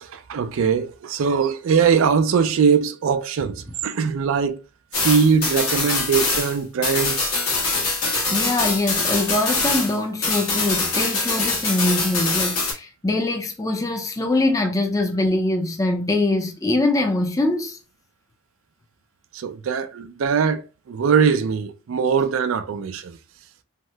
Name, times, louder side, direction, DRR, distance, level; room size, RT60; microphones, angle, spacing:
voice 1, 0.0-4.6 5.0-7.3 19.3-23.2, right 6 dB, 70° right, 0.4 m, -21 dB
sound 1, 4.9-10.0 10.2-12.7, left 3 dB, 90° left, 1.2 m, -23 dB
voice 2, 8.3-17.8, left 2 dB, 15° left, 0.3 m, -23 dB
2.8 x 2.0 x 3.3 m
head